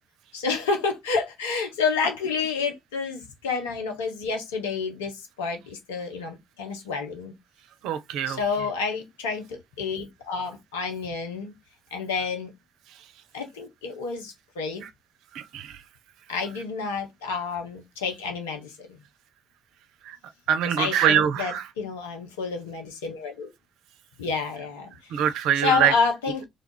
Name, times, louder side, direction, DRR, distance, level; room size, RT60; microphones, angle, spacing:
voice 1, 0.3-7.3 8.3-11.5 11.9-12.5 13.3-14.8 16.3-19.0 20.6-23.5 24.2-25.3 25.6-26.4, left 5 dB, 90° left, 0.7 m, -29 dB
voice 2, 7.8-8.4 15.3-15.7 20.1-20.2 20.5-21.6 25.1-25.9, right 9 dB, 75° right, 0.4 m, -23 dB
3.2 x 2.4 x 3.7 m
hypercardioid pair, 45°, 0 cm